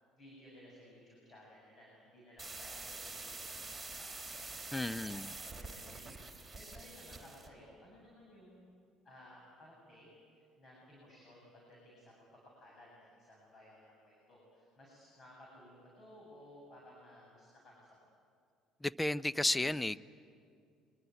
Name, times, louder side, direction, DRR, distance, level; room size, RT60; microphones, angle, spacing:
voice 1, 0.1-4.5 4.8-6.0 6.4-8.7 9.0-12.1 12.6-18.0, left 1 dB, 35° left, -3 dB, 7.8 m, -58 dB
sound 1, 2.4-7.5, right 3 dB, 5° right, 3.6 m, -46 dB
voice 2, 4.7-5.3 18.8-20.0, left 1 dB, 10° left, 17 dB, 0.6 m, -33 dB
24.5 x 22.0 x 9.5 m, 2.4 s
supercardioid pair, 75°, 0 cm